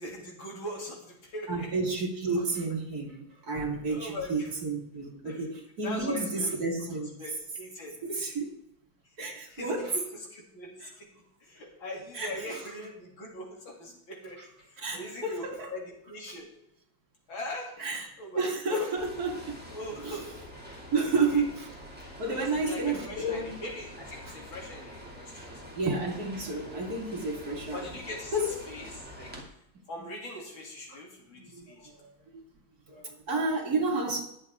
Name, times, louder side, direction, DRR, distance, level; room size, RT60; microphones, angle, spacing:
voice 1, 0.0-1.7 2.3-2.4 3.9-4.5 5.3-5.4 5.8-6.5 6.9-8.3 9.5-11.1 11.4-14.4 14.7-16.5 17.3-17.8 18.2-18.9 19.7-20.3 20.9-21.4 22.3-25.8 27.7-28.3 28.7-29.3 29.9-32.0, left 1 dB, 80° left, -1 dB, 3.7 m, -41 dB
voice 2, 1.5-7.2 8.0-8.6 9.2-10.0 10.8-10.9 12.1-12.6 14.4-14.5 14.8-15.8 17.8-19.6 20.0-20.2 20.9-21.7 22.2-23.6 24.3-24.4 25.7-27.8 28.3-28.5 30.9-31.0 31.3-32.4 32.9-34.2, right 3 dB, 50° right, 0 dB, 2.6 m, -31 dB
sound 1, 19.0-29.4, equal, 5° right, 2.4 m, -46 dB
21.5 x 7.3 x 3.6 m, 0.76 s
omnidirectional pair, 2.2 m